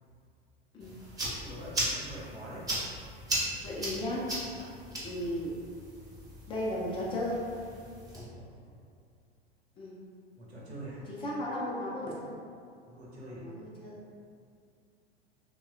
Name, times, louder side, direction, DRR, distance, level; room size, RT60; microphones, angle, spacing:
sound 1, 0.8-8.2, right 1 dB, 10° right, 0.7 m, -37 dB
voice 1, 1.4-2.6 8.1-8.8 10.4-11.0 12.9-13.4, right 1 dB, 85° right, -7 dB, 0.9 m, -45 dB
voice 2, 3.6-4.2 5.0-5.5 6.5-7.4 9.8-10.0 11.1-12.3 13.3-14.0, left 1 dB, 20° left, -5 dB, 0.3 m, -35 dB
3.3 x 2.1 x 2.5 m, 2.3 s
figure-of-eight pair, 90°, 31 cm